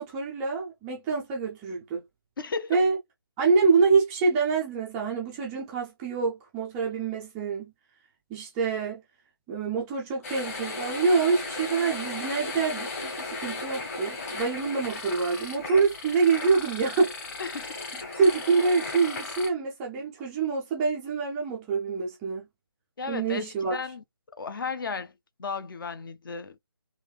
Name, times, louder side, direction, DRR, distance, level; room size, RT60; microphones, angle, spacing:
voice 1, 0.0-2.0 2.7-3.0 3.4-7.7 8.3-9.0 9.5-17.1 18.2-22.4 23.1-23.8, right 4 dB, 5° right, 0.3 m, -26 dB
voice 2, 2.4-2.8 17.4-17.7 23.0-24.0 24.4-25.1 25.4-26.6, left 4 dB, 55° left, 0.6 m, -34 dB
sound 1, 10.2-19.5, left 3 dB, 35° left, 1.4 m, -36 dB
3.4 x 2.6 x 3.3 m
figure-of-eight pair, 155°, 14 cm